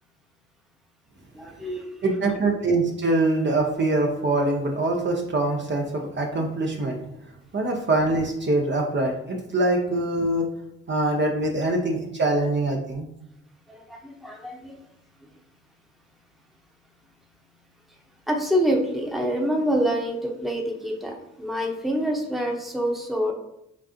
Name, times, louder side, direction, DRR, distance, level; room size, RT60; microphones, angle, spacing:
voice 1, 1.3-2.2 13.7-14.8 18.3-23.3, equal, ahead, 0 dB, 1.0 m, -26 dB
voice 2, 2.0-7.0 7.5-10.5 10.9-13.1, right 2 dB, 40° right, 1 dB, 0.9 m, -24 dB
6.0 x 2.5 x 2.9 m, 0.83 s
hypercardioid pair, 45°, 30 cm